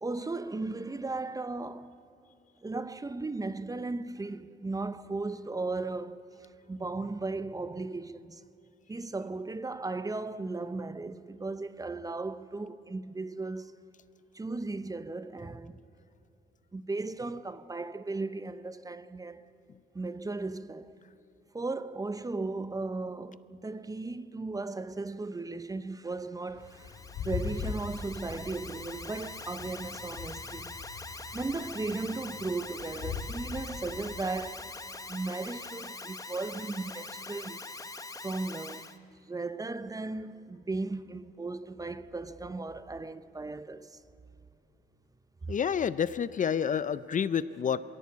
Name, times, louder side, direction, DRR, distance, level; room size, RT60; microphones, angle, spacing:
voice 1, 0.0-2.0 2.6-8.4 8.9-13.7 14.3-15.8 16.7-19.5 19.9-21.0 21.5-30.7 31.3-34.7 35.1-37.7 38.2-38.9 39.2-44.0 45.4-45.5, right 3 dB, 20° right, 0.6 m, -36 dB
sound 1, 26.5-34.2, left 5 dB, 85° left, 2.5 m, -41 dB
Alarm, 26.6-39.0, left 3 dB, 15° left, 0.9 m, -43 dB
voice 2, 45.5-48.0, left 7 dB, 40° left, 0.5 m, -29 dB
21.5 x 16.5 x 8.4 m
cardioid pair, 90°, 20 cm